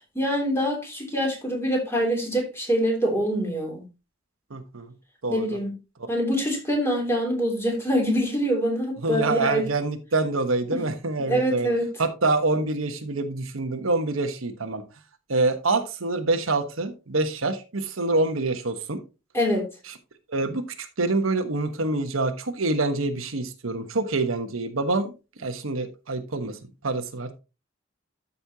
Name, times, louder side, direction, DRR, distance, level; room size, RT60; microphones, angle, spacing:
voice 1, 0.1-3.8 5.3-5.7 6.1-9.6 10.7-10.8 11.3-11.9 19.3-19.7, equal, 15° left, 1 dB, 3.0 m, -24 dB
voice 2, 4.5-4.9 5.2-5.6 6.0-6.1 9.0-11.7 12.0-14.8 15.3-19.0 19.9-20.0 20.3-25.1 25.4-26.6 26.8-27.3, right 2 dB, 85° right, 7 dB, 1.2 m, -26 dB
13.0 x 5.5 x 2.8 m, 0.28 s
head